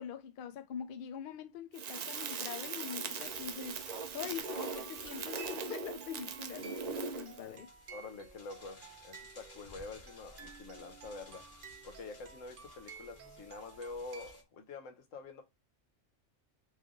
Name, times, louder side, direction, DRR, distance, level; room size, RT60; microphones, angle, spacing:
voice 1, 0.0-7.7, left 8 dB, 60° left, 0.6 m, -44 dB
Crackle, 1.7-7.4, right 5 dB, 70° right, 0.4 m, -40 dB
sound 1, 3.2-14.4, left 2 dB, 40° left, 1.6 m, -58 dB
sound 2, 4.3-14.4, right 7 dB, 50° right, 0.7 m, -54 dB
voice 2, 7.9-11.5 11.8-15.4, left 3 dB, 80° left, 1.3 m, -47 dB
3.4 x 3.3 x 3.6 m
omnidirectional pair, 1.3 m